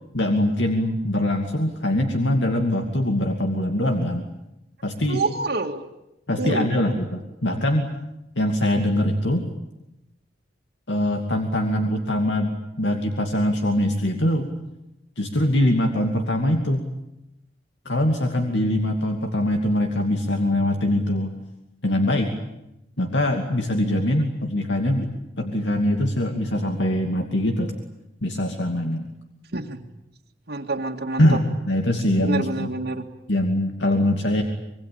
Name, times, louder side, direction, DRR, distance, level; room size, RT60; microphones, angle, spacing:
voice 1, 0.1-4.2 4.8-5.2 6.3-7.9 8.4-9.4 10.9-14.5 15.2-16.8 17.8-21.3 21.8-22.3 23.0-25.1 25.4-27.7 28.2-29.1 31.2-32.7 33.3-34.4, left 1 dB, 75° left, 4 dB, 2.6 m, -23 dB
voice 2, 5.1-5.8 6.4-6.7 29.5-29.8 30.5-31.4 32.2-33.1, right 3 dB, 60° right, 1 dB, 2.0 m, -27 dB
26.0 x 23.5 x 8.7 m, 0.89 s
head